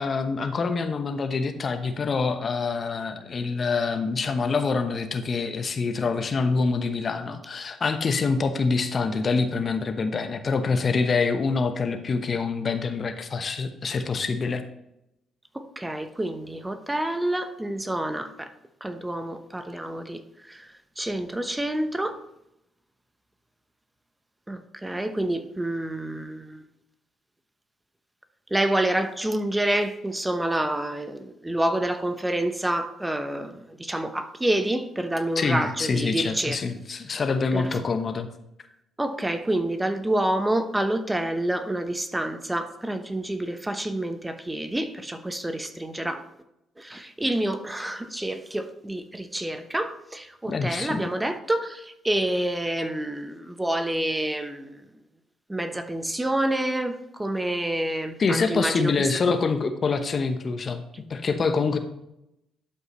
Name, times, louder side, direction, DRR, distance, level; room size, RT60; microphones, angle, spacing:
voice 1, 0.0-14.6 35.4-38.3 50.5-51.1 58.2-60.8 61.1-61.8, left 4 dB, 45° left, 0.9 m, -26 dB
voice 2, 15.5-18.5 18.8-22.2 24.5-26.6 28.5-36.6 37.5-37.8 39.0-46.3 46.8-54.8 55.5-59.1, right 1 dB, 15° right, 1.0 m, -28 dB
12.0 x 5.4 x 3.1 m
hypercardioid pair, 45°, 0 cm